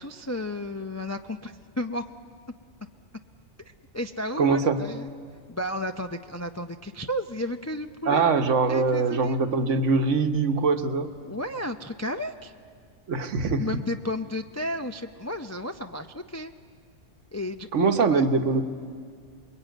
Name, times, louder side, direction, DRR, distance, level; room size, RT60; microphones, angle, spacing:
voice 1, 0.0-2.0 3.9-5.1 5.5-8.2 8.7-9.4 11.2-12.5 13.6-16.5 17.3-18.2, left 1 dB, 25° left, 6 dB, 0.3 m, -33 dB
voice 2, 4.4-4.8 8.1-11.1 13.1-13.7 17.7-18.6, right 4 dB, 65° right, 7 dB, 1.4 m, -23 dB
27.5 x 21.5 x 9.2 m, 2.1 s
omnidirectional pair, 1.4 m